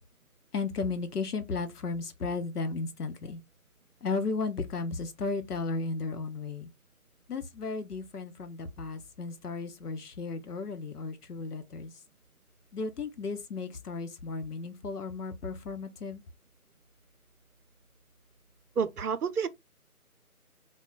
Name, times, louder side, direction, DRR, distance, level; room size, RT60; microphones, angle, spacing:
voice 1, 0.5-3.4 4.0-6.7 7.3-11.9 12.7-16.2, left 4 dB, 85° left, 0.8 m, -34 dB
voice 2, 18.8-19.5, right 6 dB, 80° right, 0.6 m, -29 dB
2.3 x 2.1 x 3.6 m
figure-of-eight pair, 170°, 45 cm